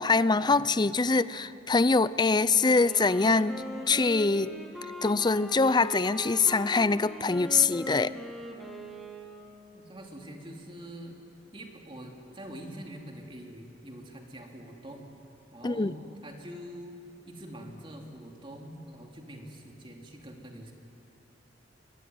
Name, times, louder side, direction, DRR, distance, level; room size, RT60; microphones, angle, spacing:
voice 1, 0.0-3.6 3.9-4.5 5.0-8.1 15.6-15.9, left 3 dB, 25° left, 16 dB, 0.6 m, -24 dB
Wind instrument woodwind instrument, 2.5-9.7, equal, ahead, 2.6 m, -41 dB
voice 2, 9.7-11.2 11.5-15.1 15.5-16.0 16.2-17.0 17.3-20.7, right 1 dB, 30° right, 1 dB, 2.9 m, -44 dB
24.5 x 22.0 x 9.5 m, 2.7 s
head